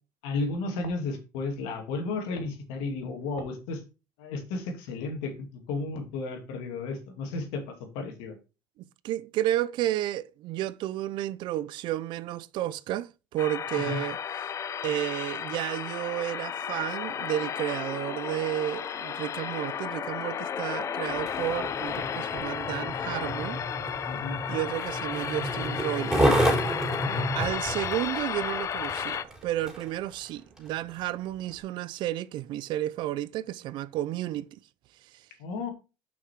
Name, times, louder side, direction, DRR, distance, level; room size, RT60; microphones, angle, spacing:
voice 1, 0.2-3.8 4.2-8.3 13.8-14.0 24.0-24.4 27.0-27.3 35.4-35.7, left 3 dB, 80° left, 2.3 m, -33 dB
voice 2, 8.8-14.2 14.8-23.6 24.5-26.3 27.3-34.5, right 13 dB, 65° right, 0.5 m, -32 dB
sound 1, 13.4-29.2, left 8 dB, 35° left, 0.5 m, -33 dB
Skateboard, 21.1-30.0 30.6-30.7, right 1 dB, 5° right, 3.9 m, -30 dB
6.0 x 5.9 x 4.6 m
cardioid pair, 110°, 9 cm